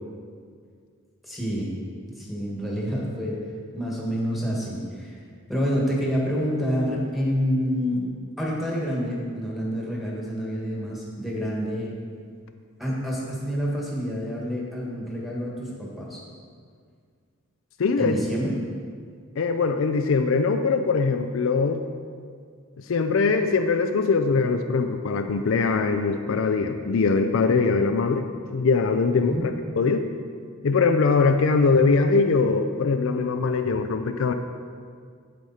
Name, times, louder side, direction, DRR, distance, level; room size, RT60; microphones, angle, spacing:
voice 1, 1.2-1.7 2.1-3.4 3.7-5.2 5.5-8.1 8.4-11.9 12.8-16.2 18.0-18.5 29.3-29.4, equal, ahead, -5 dB, 1.7 m, -28 dB
voice 2, 17.8-18.2 19.4-21.8 22.8-30.1 30.6-34.3, left 4 dB, 65° left, 7 dB, 0.4 m, -22 dB
8.2 x 7.9 x 4.2 m, 2.1 s
head